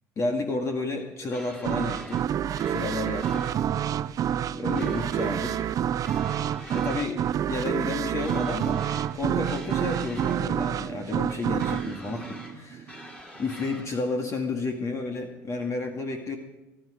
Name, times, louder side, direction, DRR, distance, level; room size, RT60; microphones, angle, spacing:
voice 1, 0.2-2.3 2.7-3.5 4.5-5.6 6.7-7.2 7.5-8.9 9.1-13.0 13.4-16.4, left 3 dB, 40° left, 3 dB, 2.1 m, -31 dB
sound 1, 1.3-2.2 2.5-3.6 4.7-5.7 6.0-7.0 8.2-9.1 9.4-10.4 11.6-12.5 12.9-13.9, left 1 dB, 15° left, 5.0 m, -45 dB
sound 2, 1.6-13.1, right 10 dB, 45° right, 0.7 m, -28 dB
22.5 x 12.0 x 5.1 m, 1.0 s
supercardioid pair, 90°, 8 cm